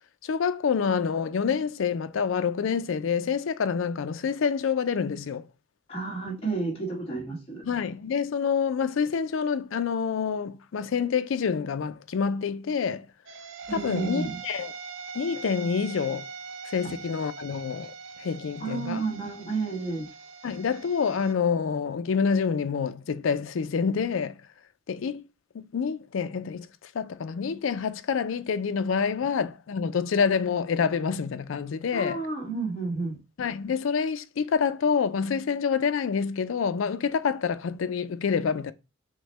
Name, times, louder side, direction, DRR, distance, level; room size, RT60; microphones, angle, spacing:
voice 1, 0.2-5.4 7.6-13.1 13.7-14.7 15.1-16.2 16.7-17.9 18.2-19.0 20.4-24.4 24.9-25.2 25.5-32.2 33.4-38.7, left 6 dB, 75° left, 0.4 m, -27 dB
voice 2, 5.9-7.7 13.7-14.4 16.8-16.9 18.6-20.1 31.9-33.2, right 4 dB, 30° left, 1.4 m, -31 dB
sound 1, 13.3-21.3, right 5 dB, 70° right, 0.5 m, -42 dB
6.1 x 2.1 x 3.2 m
head